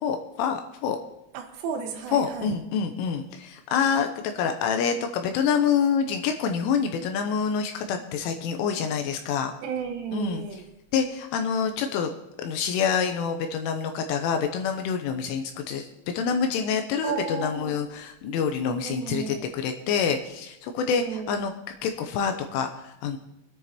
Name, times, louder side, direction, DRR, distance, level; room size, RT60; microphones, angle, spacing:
voice 1, 0.0-1.0 2.1-4.1 4.3-9.5 10.1-10.4 10.9-12.1 12.4-15.9 16.1-21.5 21.8-23.2, left 6 dB, 80° left, 5 dB, 3.1 m, -26 dB
voice 2, 1.3-2.5 9.6-10.6 17.0-17.8 18.8-19.5 20.9-21.4, right 6 dB, 75° right, 3 dB, 3.5 m, -33 dB
24.5 x 9.7 x 3.0 m, 0.88 s
omnidirectional pair, 5.9 m